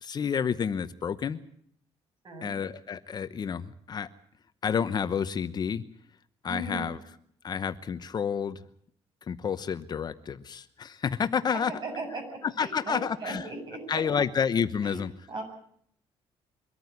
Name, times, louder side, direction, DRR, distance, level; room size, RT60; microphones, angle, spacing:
voice 1, 0.0-1.4 2.4-4.1 4.6-5.8 6.4-7.0 7.4-8.6 9.2-11.7 12.6-13.4 13.9-15.1, left 7 dB, 40° left, 12 dB, 0.9 m, -29 dB
voice 2, 2.2-2.6 6.5-6.9 11.7-12.2 12.6-14.0 14.8-15.0 15.3-15.4, right 2 dB, 45° right, 3 dB, 7.9 m, -37 dB
23.5 x 14.0 x 9.6 m, 0.65 s
cardioid pair, 135°, 11 cm